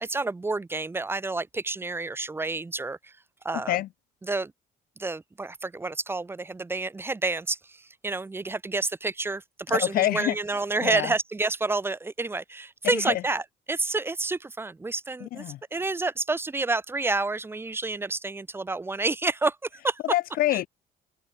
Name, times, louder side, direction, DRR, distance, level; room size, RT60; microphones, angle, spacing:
voice 1, 0.0-3.1 3.4-3.8 4.2-4.5 5.0-15.4 15.7-19.6 19.8-20.0 20.5-20.6, right 3 dB, 15° right, 0.7 m, -29 dB
voice 2, 9.7-10.3 10.8-11.1 12.9-13.2 15.2-15.6 20.0-20.7, left 15 dB, 60° left, 0.5 m, -26 dB
open air
cardioid pair, 110°, 17 cm